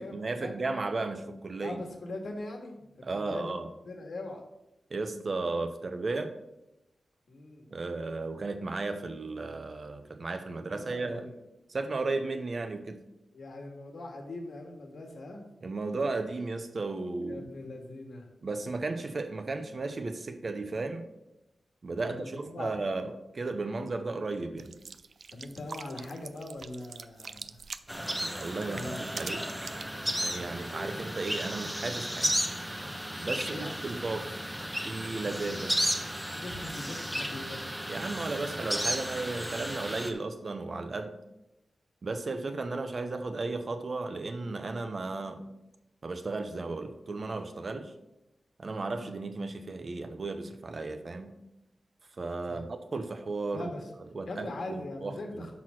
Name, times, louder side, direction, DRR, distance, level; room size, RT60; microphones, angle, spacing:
voice 1, 0.0-1.8 3.0-3.7 4.9-6.3 7.7-11.3 11.7-13.0 15.6-17.5 18.4-21.0 21.8-24.7 28.3-29.7 30.2-32.3 33.2-34.3 34.8-35.7 37.9-41.1 42.0-45.5 46.0-47.9 48.6-51.4 52.2-53.7 54.1-55.5, right 3 dB, 45° right, 8 dB, 0.7 m, -34 dB
voice 2, 1.6-2.9 3.1-3.6 3.8-4.4 7.3-7.7 10.6-11.4 13.3-15.5 17.3-18.3 22.0-22.7 25.3-27.6 28.7-29.0 30.3-30.6 33.5-33.7 35.2-35.4 36.3-37.6 52.5-52.7 53.5-53.9 54.3-55.5, left 2 dB, 70° left, 3 dB, 1.7 m, -41 dB
sound 1, 24.6-29.8, right 5 dB, 60° right, 0.4 m, -44 dB
sound 2, 27.9-40.1, equal, 5° right, 0.9 m, -34 dB
6.0 x 6.0 x 6.2 m, 0.90 s
wide cardioid pair, 145°, 0 cm